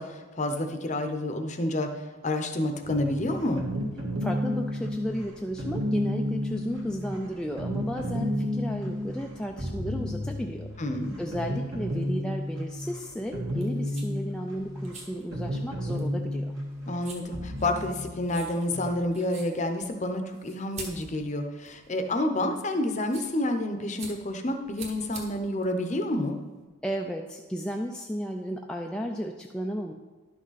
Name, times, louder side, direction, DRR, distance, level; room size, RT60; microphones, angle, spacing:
voice 1, 0.0-3.6 10.8-11.2 16.9-26.4, left 1 dB, 35° left, 6 dB, 0.7 m, -29 dB
sound 1, 2.8-19.0, equal, 55° right, 1.6 m, -32 dB
voice 2, 4.2-10.7 11.2-16.6 26.8-29.9, equal, 5° left, 1 dB, 0.3 m, -33 dB
sound 2, 13.5-26.6, right 3 dB, 30° right, 1.2 m, -48 dB
11.0 x 6.2 x 4.1 m, 1.2 s
head